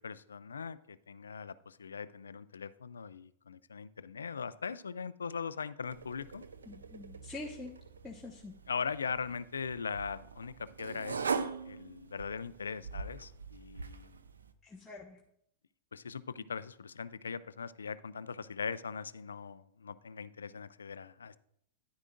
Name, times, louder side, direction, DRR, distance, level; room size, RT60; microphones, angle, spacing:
voice 1, 0.0-6.5 8.7-11.4 11.7-14.2 15.9-21.4, left 6 dB, 85° left, 16 dB, 0.4 m, -40 dB
sound 1, 5.9-14.5, right 5 dB, 90° right, 0.6 m, -42 dB
voice 2, 6.7-7.7 8.0-8.5 14.6-15.2, left 2 dB, 10° left, -4 dB, 1.2 m, -45 dB
10.5 x 9.7 x 2.5 m, 0.71 s
hypercardioid pair, 105°, 0 cm